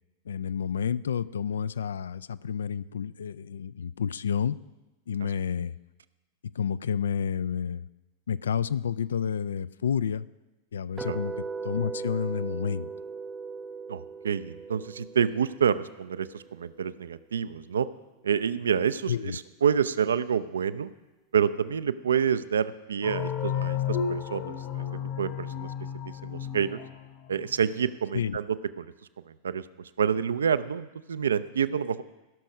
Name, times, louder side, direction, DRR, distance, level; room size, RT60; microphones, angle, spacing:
voice 1, 0.3-4.6 5.1-5.8 6.5-7.9 8.3-10.3 10.7-12.9 19.1-19.4 28.1-28.4, left 7 dB, 65° left, 18 dB, 0.3 m, -30 dB
sound 1, 11.0-17.0, right 4 dB, 15° right, 0.4 m, -38 dB
voice 2, 13.9-17.9 18.2-20.9 21.3-24.8 25.2-25.7 26.2-26.8 27.3-28.5 28.8-28.9 29.4-29.6 30.0-32.0, right 7 dB, 70° right, 15 dB, 0.4 m, -28 dB
sound 2, 23.0-27.5, left 8 dB, 45° left, 1.3 m, -32 dB
16.5 x 6.3 x 5.3 m, 1.1 s
figure-of-eight pair, 90°, 0 cm